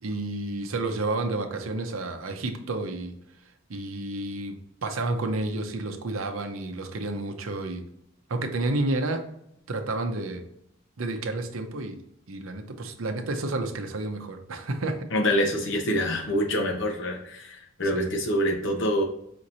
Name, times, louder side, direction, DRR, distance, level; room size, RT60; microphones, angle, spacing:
voice 1, 0.0-3.1 3.7-4.6 4.8-7.8 8.3-9.2 9.7-10.4 11.0-12.0 12.3-15.0 17.9-18.1, right 2 dB, 75° right, 5 dB, 0.7 m, -30 dB
voice 2, 15.1-19.0, equal, 60° left, 2 dB, 1.0 m, -26 dB
5.1 x 3.0 x 2.6 m, 0.77 s
head